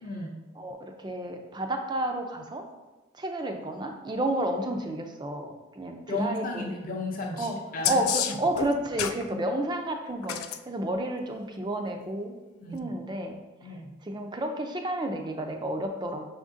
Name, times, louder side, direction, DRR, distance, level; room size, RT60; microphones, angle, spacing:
voice 1, 0.0-0.4 6.1-8.0 9.3-9.4 12.6-12.9 13.6-13.9, left 2 dB, 40° left, -1 dB, 0.6 m, -34 dB
voice 2, 0.6-2.6 3.2-6.7 7.4-7.6 7.9-12.4 12.7-13.7 14.0-16.2, right 1 dB, 20° right, 4 dB, 0.4 m, -31 dB
sound 1, 7.8-9.2 10.2-10.6 12.7-12.8, left 10 dB, 85° left, 0.3 m, -29 dB
5.6 x 3.6 x 2.6 m, 1.2 s
head